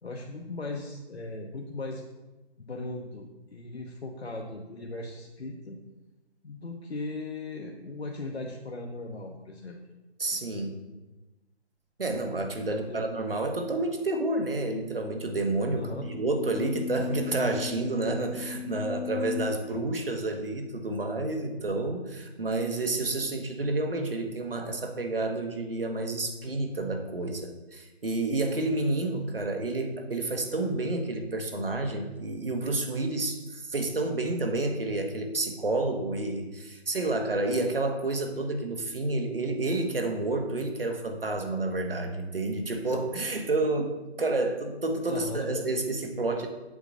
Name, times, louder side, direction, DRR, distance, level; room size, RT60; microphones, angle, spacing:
voice 1, 0.0-2.1 2.6-5.8 6.4-9.8 12.7-13.0 15.7-16.1 45.1-45.5, left 2 dB, 70° left, 0 dB, 1.1 m, -38 dB
voice 2, 10.2-10.8 12.0-43.9 44.2-46.5, right 2 dB, 55° right, 4 dB, 1.5 m, -29 dB
sound 1, 15.1-19.5, left 9 dB, ahead, 0.4 m, -38 dB
7.9 x 4.0 x 6.3 m, 1.1 s
figure-of-eight pair, 170°, 33 cm